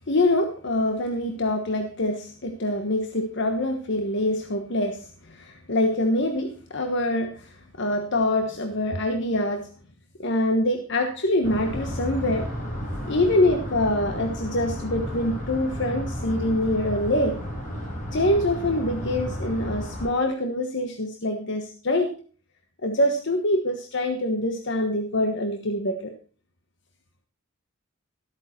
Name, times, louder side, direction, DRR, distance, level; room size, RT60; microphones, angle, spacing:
voice 1, 0.1-9.7 10.2-12.5 13.1-17.4 18.1-22.1 22.8-26.1, left 1 dB, 60° left, 5 dB, 1.3 m, -25 dB
sound 1, 11.4-20.1, equal, 40° left, 4.8 m, -32 dB
13.5 x 8.5 x 4.5 m, 0.40 s
head